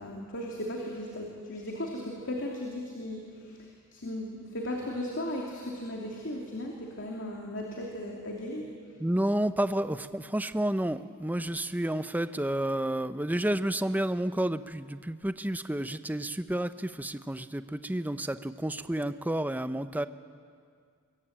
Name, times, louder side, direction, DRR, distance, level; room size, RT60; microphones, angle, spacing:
voice 1, 0.0-3.6 3.9-8.7, left 1 dB, 60° left, -1 dB, 3.0 m, -36 dB
voice 2, 9.0-20.1, right 1 dB, 10° right, 11 dB, 0.7 m, -30 dB
23.5 x 22.5 x 8.9 m, 2.2 s
head